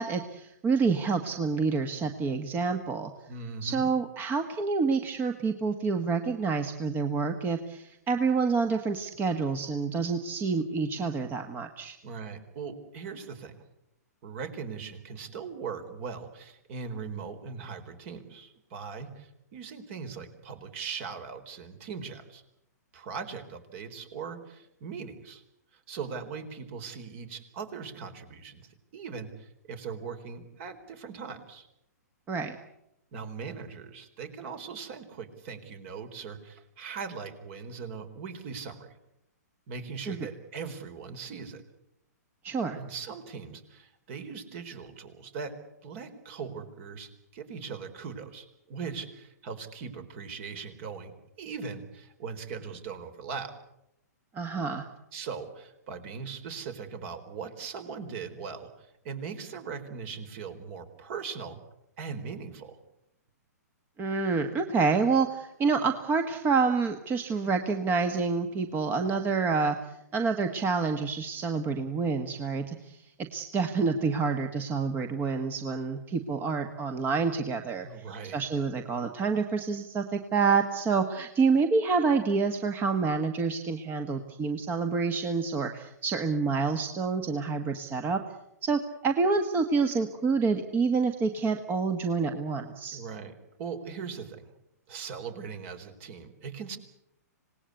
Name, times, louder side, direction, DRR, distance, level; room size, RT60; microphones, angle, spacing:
voice 1, 0.0-3.1 3.6-12.0 32.3-32.5 40.1-40.3 42.4-42.8 54.3-54.9 64.0-73.0 73.3-78.1 78.3-88.2 88.6-93.0, right 4 dB, 20° right, 7 dB, 1.6 m, -28 dB
voice 2, 3.3-3.9 12.0-13.6 14.2-22.4 22.9-25.4 25.7-31.7 33.1-38.9 39.7-41.6 42.7-45.6 45.8-51.1 51.4-53.5 55.1-61.6 62.0-62.8 77.8-78.4 92.9-94.5 94.9-96.8, right 5 dB, 45° right, 9 dB, 4.1 m, -40 dB
26.5 x 19.0 x 8.4 m, 0.82 s
hypercardioid pair, 130°, 9 cm